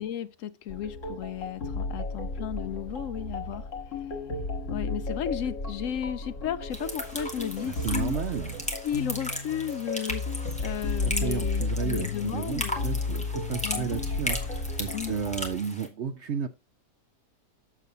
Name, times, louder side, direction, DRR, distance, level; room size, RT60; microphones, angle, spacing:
voice 1, 0.0-3.7 4.7-8.1 8.8-12.9 13.6-13.9 14.9-15.1, left 10 dB, 70° left, 0.8 m, -34 dB
sound 1, 0.7-15.6, left 3 dB, 50° left, 1.9 m, -33 dB
sound 2, 6.7-15.9, left 1 dB, 5° left, 1.2 m, -37 dB
sound 3, 7.0-13.3, right 3 dB, 90° right, 5.1 m, -56 dB
voice 2, 7.6-8.7 11.0-16.5, right 7 dB, 60° right, 0.7 m, -33 dB
7.4 x 6.8 x 3.9 m
omnidirectional pair, 1.8 m